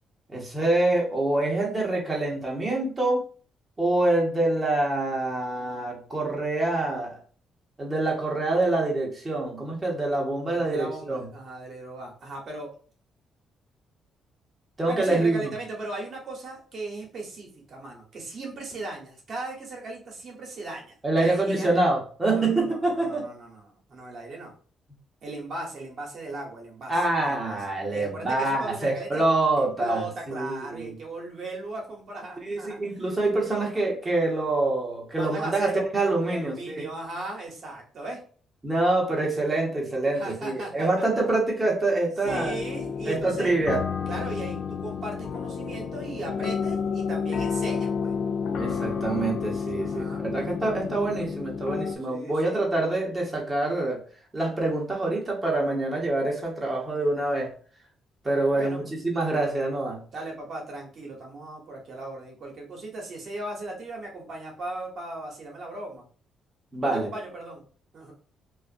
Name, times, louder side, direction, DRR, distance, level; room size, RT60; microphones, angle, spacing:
voice 1, 0.3-3.2 3.8-7.2 7.8-11.3 14.8-15.5 21.0-23.3 26.9-31.0 32.4-36.8 38.6-42.6 43.1-43.8 48.6-54.0 54.3-57.5 58.2-58.8 59.0-60.0 66.7-67.1, right 2 dB, 25° right, -2 dB, 1.0 m, -26 dB
voice 2, 10.5-12.7 14.9-21.8 22.2-24.5 25.2-27.6 27.9-29.2 29.6-32.8 35.1-35.8 36.3-38.2 40.1-41.3 42.2-43.5 44.1-48.1 49.7-50.2 52.1-52.6 58.5-58.9 60.1-66.0 66.8-67.6 67.9-68.1, right 2 dB, 55° right, 0 dB, 1.1 m, -37 dB
sound 1, 42.3-52.0, left 6 dB, 75° left, 0.3 m, -30 dB
2.4 x 2.4 x 2.5 m, 0.42 s
cardioid pair, 90°, 0 cm